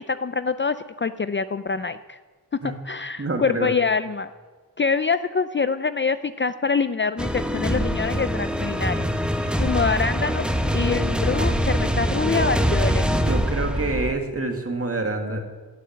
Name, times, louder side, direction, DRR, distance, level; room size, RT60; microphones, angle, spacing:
voice 1, 0.0-2.2 2.5-2.6 2.8-4.3 4.8-9.1 9.5-10.5 10.7-13.0, left 5 dB, 30° left, 12 dB, 0.5 m, -25 dB
voice 2, 3.2-3.7 13.2-15.4, right 3 dB, 35° right, 4 dB, 2.2 m, -27 dB
sound 1, 7.2-14.1, equal, ahead, 1.1 m, -23 dB
16.0 x 9.0 x 7.7 m, 1.4 s
wide cardioid pair, 90°, 39 cm